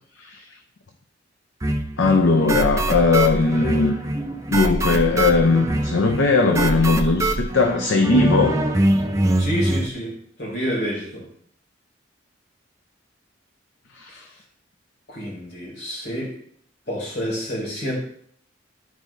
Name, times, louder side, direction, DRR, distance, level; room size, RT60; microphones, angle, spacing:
sound 1, 1.6-9.9, right 1 dB, 15° right, 0.5 m, -23 dB
voice 1, 2.0-4.0 4.5-8.6 14.0-14.2, left 3 dB, 70° left, 4 dB, 0.7 m, -19 dB
voice 2, 9.4-11.2 14.1-14.2 15.1-16.3 16.9-18.0, equal, 55° left, -2 dB, 3.0 m, -28 dB
12.0 x 4.7 x 2.7 m, 0.63 s
head